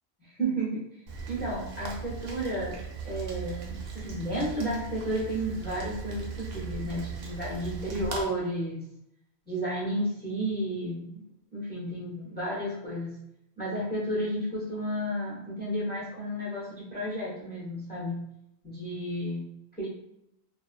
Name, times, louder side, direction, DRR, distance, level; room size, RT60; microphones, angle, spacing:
voice 1, 0.2-0.8 1.3-2.8 3.0-8.9 9.5-11.2 11.5-13.1 13.6-18.2 18.6-19.4 19.8-19.9, right 1 dB, 10° left, -7 dB, 0.5 m, -32 dB
Rain, 1.1-8.2, right 5 dB, 75° right, 0.8 m, -38 dB
2.4 x 2.1 x 2.4 m, 0.78 s
omnidirectional pair, 1.1 m